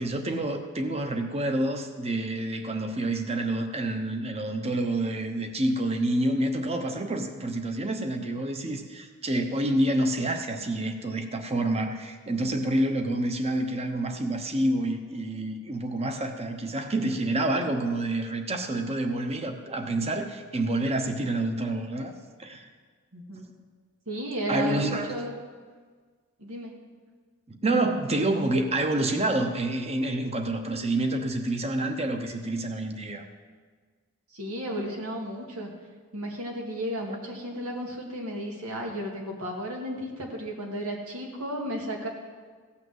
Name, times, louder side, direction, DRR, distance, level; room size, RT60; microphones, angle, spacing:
voice 1, 0.0-22.1 22.4-22.7 24.5-25.1 27.5-33.2, right 1 dB, 30° right, 6 dB, 1.0 m, -28 dB
voice 2, 23.1-23.5 24.1-25.4 26.4-26.7 34.3-35.7 36.1-42.1, right 1 dB, 90° right, 0 dB, 2.3 m, -33 dB
15.5 x 5.9 x 7.9 m, 1.5 s
head